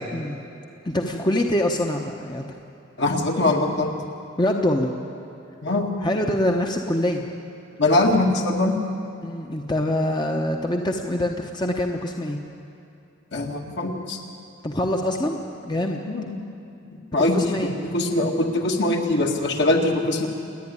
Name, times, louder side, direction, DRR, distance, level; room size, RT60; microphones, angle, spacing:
voice 1, 0.1-0.4 0.8-2.5 4.4-4.9 6.0-7.3 9.2-12.4 14.6-15.4 15.6-16.0 17.3-17.7, left 1 dB, 20° left, 2 dB, 1.0 m, -24 dB
voice 2, 3.0-3.9 5.6-5.9 7.8-8.8 13.3-14.2 16.1-16.4 16.9-17.6 17.9-20.3, left 2 dB, 60° left, 1 dB, 2.2 m, -22 dB
29.0 x 10.0 x 9.8 m, 2.8 s
head